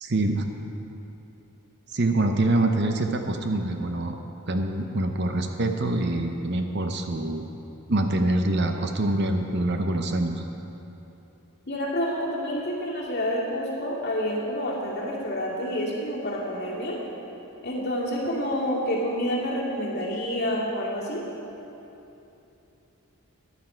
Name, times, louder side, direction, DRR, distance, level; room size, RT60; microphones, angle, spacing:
voice 1, 0.0-0.5 1.9-4.1 4.5-7.5 7.9-10.4, right 2 dB, 50° right, 5 dB, 0.7 m, -25 dB
voice 2, 11.7-17.0 17.6-21.2, equal, 45° left, -5 dB, 2.4 m, -28 dB
14.5 x 10.0 x 4.5 m, 3.0 s
head